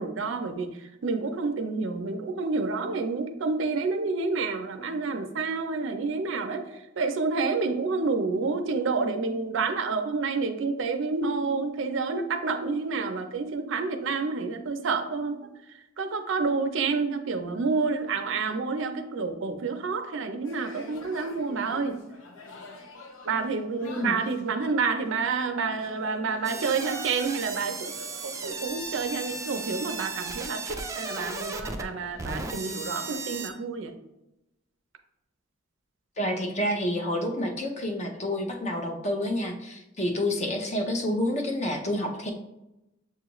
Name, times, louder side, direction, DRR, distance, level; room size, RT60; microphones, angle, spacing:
voice 1, 0.0-22.0 23.2-27.9 28.2-33.9, right 4 dB, 70° right, 7 dB, 0.5 m, -29 dB
sound 1, 20.4-33.1, left 3 dB, 85° left, 0.7 m, -48 dB
sound 2, 26.4-33.5, right 3 dB, 15° right, 0.3 m, -36 dB
voice 2, 36.2-42.3, left 1 dB, 35° left, 3 dB, 0.6 m, -29 dB
6.8 x 2.4 x 3.0 m, 0.90 s
head